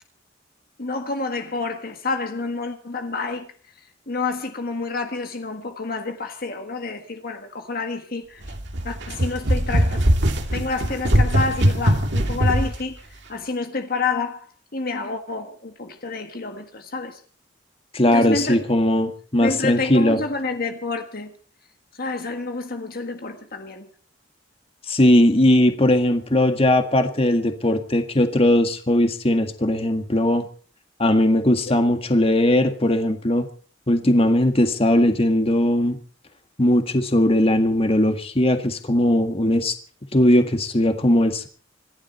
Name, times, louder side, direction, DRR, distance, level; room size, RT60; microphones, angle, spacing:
voice 1, 0.8-3.5 4.1-8.5 8.8-10.1 10.4-13.0 13.3-14.5 14.7-17.2 18.0-18.7 19.4-21.3 22.0-23.9 31.7-31.8, left 3 dB, 50° left, 1.6 m, -29 dB
sound 1, 8.4-12.8, equal, 65° right, 2.5 m, -21 dB
voice 2, 17.9-20.2 24.9-30.4 31.0-33.5 33.9-36.0 36.6-39.7 40.1-41.5, left 1 dB, 30° left, 1.8 m, -19 dB
26.5 x 11.5 x 4.4 m
head